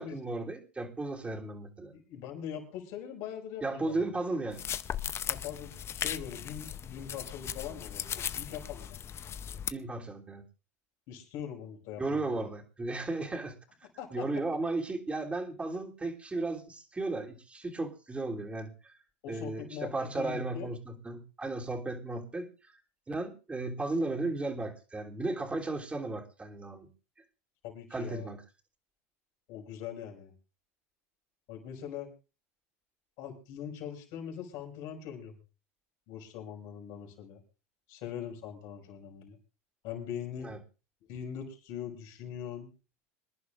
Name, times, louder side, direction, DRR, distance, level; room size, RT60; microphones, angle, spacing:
voice 1, 0.0-1.9 3.6-4.6 9.7-10.4 12.0-13.6 14.1-19.0 19.3-22.8 23.1-26.9 27.9-28.4 40.4-40.6, right 2 dB, 15° right, 2 dB, 3.2 m, -35 dB
voice 2, 1.9-4.0 5.3-9.0 11.1-12.5 14.0-14.4 19.2-20.7 27.6-28.3 29.5-30.3 31.5-32.1 33.2-35.4 36.1-37.4 37.9-39.4 39.8-40.5 41.1-42.7, left 9 dB, 60° left, 3 dB, 5.5 m, -42 dB
sound 1, 4.5-9.7, left 9 dB, 35° left, 0.7 m, -37 dB
26.5 x 11.0 x 2.5 m, 0.32 s
hypercardioid pair, 100°, 8 cm